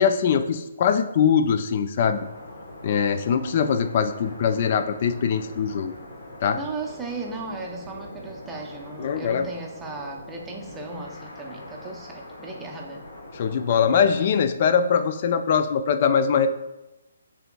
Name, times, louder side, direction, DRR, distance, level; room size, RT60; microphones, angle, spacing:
voice 1, 0.0-2.2 2.8-5.9 6.4-6.6 9.0-9.4 13.3-16.5, left 7 dB, 45° left, 9 dB, 0.4 m, -22 dB
sound 1, 2.1-14.5, left 1 dB, 75° left, 1.1 m, -42 dB
voice 2, 6.6-13.0, right 3 dB, 10° right, -1 dB, 0.6 m, -36 dB
6.7 x 3.5 x 2.3 m, 0.99 s
hypercardioid pair, 155°, 0 cm